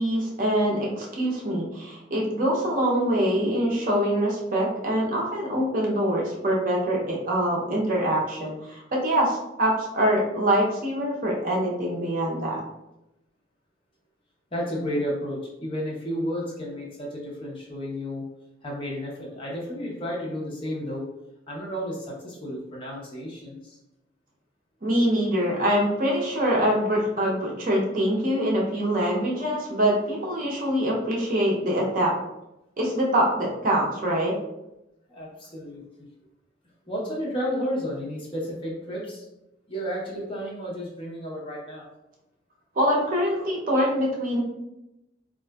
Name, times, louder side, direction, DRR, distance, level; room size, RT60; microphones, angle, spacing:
voice 1, 0.0-12.6 24.8-32.1 32.8-34.4 42.8-44.4, equal, 45° right, -2 dB, 0.6 m, -24 dB
voice 2, 14.5-18.2 18.6-21.1 21.5-23.8 35.1-35.9 36.9-39.2 39.7-41.9, equal, 30° left, -4 dB, 0.7 m, -32 dB
3.7 x 2.4 x 2.2 m, 0.91 s
head